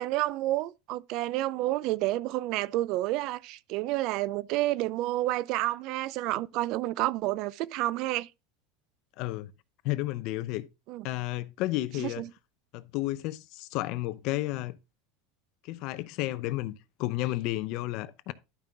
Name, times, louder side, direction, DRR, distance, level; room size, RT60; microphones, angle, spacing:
voice 1, 0.0-8.3 10.9-11.0 12.0-12.3, right 16 dB, 55° right, 0.4 m, -30 dB
voice 2, 9.2-9.5 9.8-10.7 11.0-12.2 12.7-14.8 15.6-18.3, left 17 dB, 55° left, 0.7 m, -32 dB
11.5 x 5.4 x 3.7 m
supercardioid pair, 140°, 0 cm